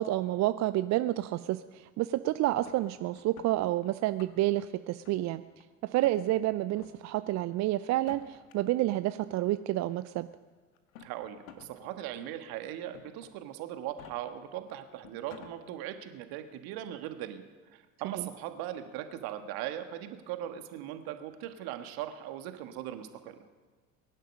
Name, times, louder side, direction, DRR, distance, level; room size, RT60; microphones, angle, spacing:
voice 1, 0.0-5.4 5.8-10.3 18.1-18.3, right 15 dB, 40° right, 13 dB, 0.6 m, -29 dB
sound 1, 2.6-3.5 4.0-4.6 5.0-5.6 6.0-6.2 6.7-6.9 7.9-8.5 9.6-9.7 10.7-11.7 12.1-12.2 12.9-13.3 13.8-14.1 14.7-14.8 15.0-15.5, left 8 dB, 75° left, 1.6 m, -52 dB
voice 2, 11.0-23.4, right 11 dB, 60° right, 8 dB, 1.6 m, -39 dB
22.5 x 11.0 x 5.4 m, 1.3 s
hypercardioid pair, 70°, 42 cm